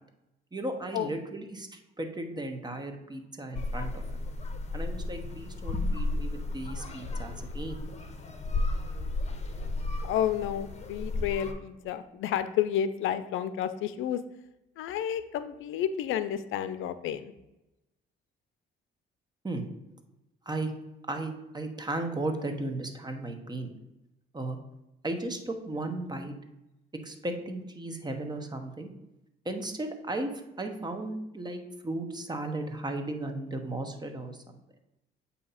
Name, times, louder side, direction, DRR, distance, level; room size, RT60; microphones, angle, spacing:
voice 1, 0.5-4.2 4.7-7.8 19.4-19.7 20.5-20.7 21.1-23.7 24.3-24.6 25.0-26.3 27.0-28.9 29.4-34.6, right 2 dB, 20° right, 5 dB, 1.0 m, -35 dB
sound 1, 3.5-11.5, left 2 dB, 35° left, 0.9 m, -33 dB
voice 2, 10.0-14.2 14.8-17.3, left 10 dB, 85° left, 12 dB, 0.5 m, -31 dB
7.8 x 2.8 x 5.6 m, 0.95 s
cardioid pair, 90°, 20 cm